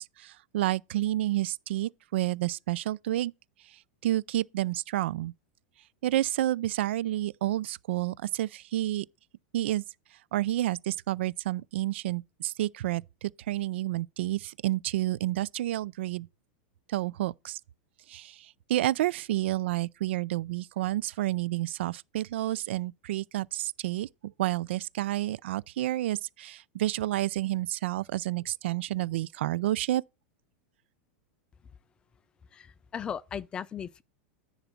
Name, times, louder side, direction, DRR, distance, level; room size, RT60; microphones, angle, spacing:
voice 1, 0.0-3.3 4.0-5.3 6.0-9.1 9.5-9.8 10.3-16.3 16.9-17.6 18.1-18.3 18.7-24.1 24.4-30.0, right 15 dB, 70° right, 0.4 m, -30 dB
voice 2, 32.5-34.0, left 8 dB, 15° left, 0.3 m, -37 dB
10.0 x 4.0 x 5.8 m
supercardioid pair, 160°, 6 cm